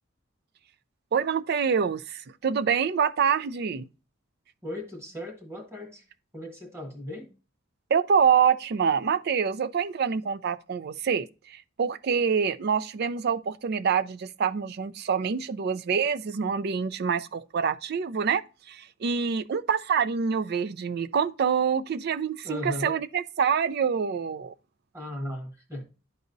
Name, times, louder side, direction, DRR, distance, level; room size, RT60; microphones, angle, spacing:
voice 1, 1.1-3.9 7.9-24.5, right 6 dB, 50° right, 0.4 m, -26 dB
voice 2, 4.6-6.0 6.3-7.3 22.4-23.0 24.9-25.9, left 1 dB, 15° right, 1.2 m, -37 dB
11.5 x 4.1 x 2.6 m
head